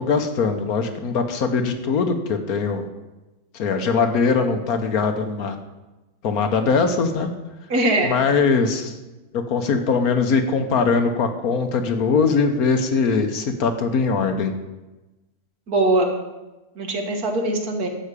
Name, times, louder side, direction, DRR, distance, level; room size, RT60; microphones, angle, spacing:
voice 1, 0.0-2.9 3.5-5.6 6.2-7.3 8.0-8.9 9.3-14.5, left 5 dB, 70° left, 7 dB, 1.5 m, -21 dB
voice 2, 7.7-8.1 15.7-16.1 16.8-17.9, right 2 dB, 80° right, 3 dB, 2.1 m, -21 dB
12.0 x 5.0 x 8.3 m, 1.1 s
omnidirectional pair, 1.6 m